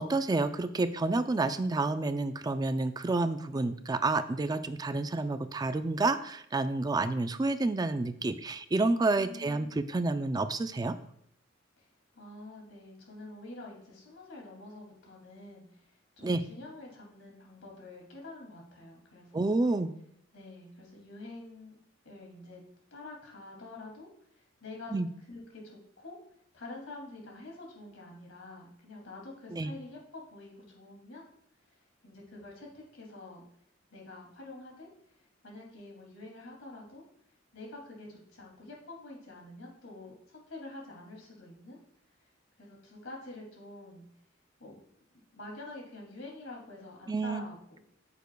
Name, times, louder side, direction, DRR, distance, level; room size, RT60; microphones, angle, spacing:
voice 1, 0.0-10.9 16.2-16.4 19.3-19.9 24.9-25.1 29.5-29.7 47.1-47.4, right 2 dB, 20° right, 10 dB, 0.4 m, -29 dB
voice 2, 9.1-9.8 11.8-11.9 12.1-19.5 20.3-21.8 22.0-22.6 22.9-24.9 25.3-26.2 26.5-31.2 31.6-33.4 33.9-37.0 37.5-41.8 42.2-42.3 42.6-44.1 44.6-44.8 45.3-47.8, left 2 dB, 90° left, -1 dB, 2.5 m, -47 dB
9.1 x 7.0 x 2.3 m, 0.69 s
head